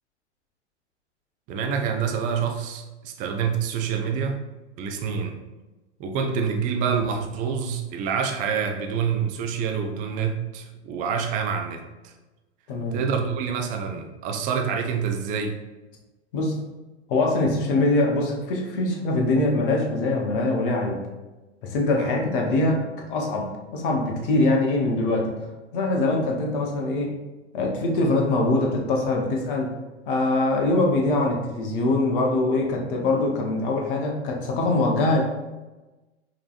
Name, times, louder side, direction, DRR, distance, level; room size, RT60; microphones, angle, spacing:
voice 1, 1.5-4.4 4.8-5.4 6.0-12.1 12.9-15.6 22.0-22.1, right 6 dB, 25° right, 4 dB, 0.5 m, -27 dB
voice 2, 12.7-13.0 16.3-16.6 17.1-21.0 21.6-25.3 25.7-27.1 27.5-29.7 30.1-35.2, left 2 dB, 45° left, 1 dB, 1.1 m, -23 dB
5.0 x 3.1 x 2.5 m, 1.1 s
figure-of-eight pair, 100°, 35 cm